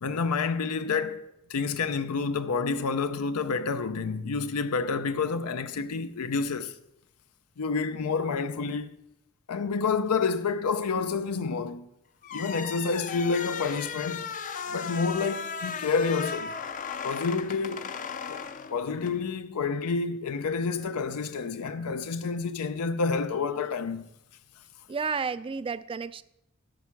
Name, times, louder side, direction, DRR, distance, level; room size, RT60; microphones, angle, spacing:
voice 1, 0.0-6.7 7.6-9.0 9.5-11.9 12.3-14.3 14.7-16.5 17.0-17.9 18.3-18.4 18.7-24.1, left 4 dB, 80° left, 0.5 m, -29 dB
sound 1, 12.2-19.2, left 6 dB, 35° left, 0.5 m, -36 dB
voice 2, 24.9-26.2, right 5 dB, 25° right, 0.3 m, -31 dB
13.0 x 5.9 x 5.8 m
head